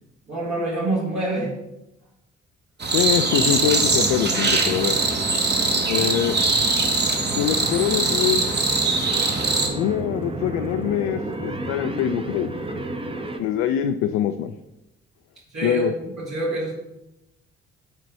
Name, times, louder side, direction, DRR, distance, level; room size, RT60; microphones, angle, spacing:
voice 1, 0.3-1.5 6.8-7.0 15.5-16.7, right 2 dB, 60° right, -8 dB, 2.6 m, -26 dB
sound 1, 2.8-9.7, right 3 dB, 35° right, 1.4 m, -22 dB
voice 2, 2.9-5.0 5.9-6.4 7.3-8.5 9.7-12.5 13.4-14.5 15.6-15.9, left 10 dB, 60° left, 7 dB, 0.5 m, -24 dB
sound 2, 3.3-13.4, right 2 dB, 15° right, 0.8 m, -31 dB
6.3 x 4.1 x 6.1 m, 0.93 s
figure-of-eight pair, 45°, 31 cm